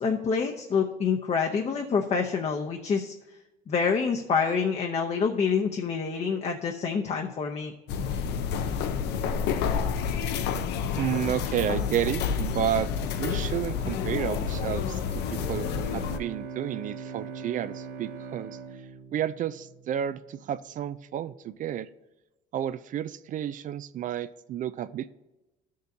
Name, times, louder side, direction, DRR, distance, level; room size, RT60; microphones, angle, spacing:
voice 1, 0.0-3.1 3.7-7.7, left 5 dB, 40° left, 2 dB, 0.7 m, -27 dB
sound 1, 7.9-16.2, left 6 dB, 85° left, 0.6 m, -29 dB
voice 2, 11.0-12.9 13.2-15.7 15.9-18.6 19.1-21.9 22.5-25.1, right 10 dB, 50° right, 14 dB, 0.4 m, -31 dB
Bowed string instrument, 14.9-20.1, right 5 dB, 75° right, 0.8 m, -41 dB
13.0 x 6.5 x 2.7 m, 1.0 s
cardioid pair, 110°, 17 cm